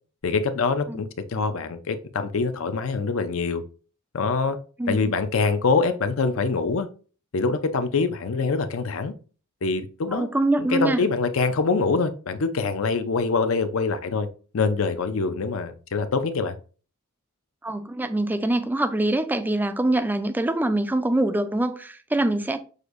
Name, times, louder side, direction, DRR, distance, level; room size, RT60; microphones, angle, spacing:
voice 1, 0.2-3.6 4.1-4.6 4.9-6.9 7.3-9.1 9.6-10.3 10.6-14.3 14.5-16.5, left 4 dB, 65° left, 0.5 m, -24 dB
voice 2, 4.8-5.1 10.1-11.0 17.6-22.6, right 1 dB, 10° right, 0.3 m, -24 dB
6.4 x 2.6 x 2.5 m
head